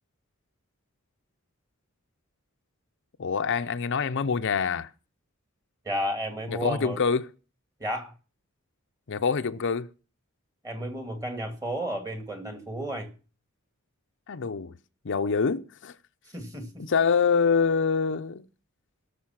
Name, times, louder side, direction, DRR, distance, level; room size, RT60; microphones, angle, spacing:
voice 1, 3.2-4.9 6.5-7.3 9.1-9.9 14.3-14.8 15.0-15.9 16.8-18.4, left 5 dB, 60° left, 0.6 m, -25 dB
voice 2, 5.8-7.0 7.8-8.1 10.6-13.1 16.3-16.7, equal, 15° right, 2.3 m, -32 dB
17.5 x 6.8 x 5.8 m
head